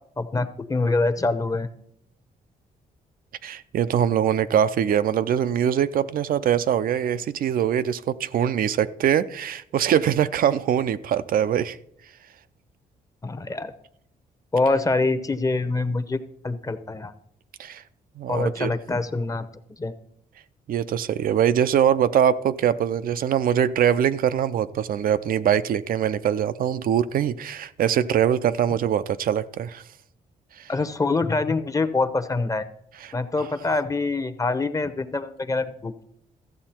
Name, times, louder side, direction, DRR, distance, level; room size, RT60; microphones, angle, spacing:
voice 1, 0.2-1.7 13.2-13.7 14.5-16.2 16.4-17.1 18.3-19.5 19.8-19.9 30.7-32.6 33.1-36.0, left 3 dB, 20° left, 0.8 m, -25 dB
voice 2, 3.4-11.8 17.6-17.8 18.2-18.7 20.7-29.8 30.6-30.7 33.0-33.1, right 9 dB, 70° right, 0.5 m, -23 dB
13.5 x 7.6 x 4.4 m
cardioid pair, 100°, 15 cm